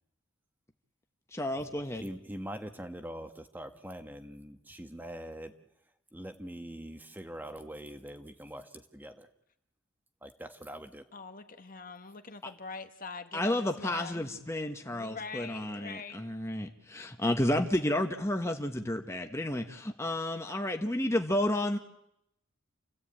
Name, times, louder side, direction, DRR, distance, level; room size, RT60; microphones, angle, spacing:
voice 1, 1.3-2.0 13.3-21.8, left 1 dB, 15° left, 4 dB, 1.2 m, -31 dB
voice 2, 2.0-5.5 6.1-9.3 10.2-11.0, equal, 10° right, 6 dB, 1.2 m, -43 dB
voice 3, 11.1-14.4 14.8-16.2, left 4 dB, 40° left, 7 dB, 1.6 m, -44 dB
29.0 x 15.5 x 8.9 m, 0.81 s
head